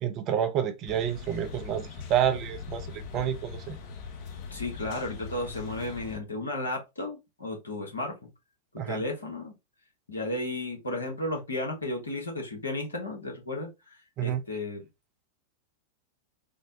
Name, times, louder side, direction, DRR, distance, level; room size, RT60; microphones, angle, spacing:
voice 1, 0.0-3.8 8.8-9.0 14.2-14.4, right 10 dB, 35° right, 0.5 m, -29 dB
sound 1, 0.9-6.2, left 5 dB, 45° left, 0.7 m, -41 dB
voice 2, 4.5-8.2 8.7-9.5 10.1-14.9, left 2 dB, 75° left, 1.1 m, -34 dB
3.5 x 2.1 x 2.6 m
figure-of-eight pair, 90°, 0 cm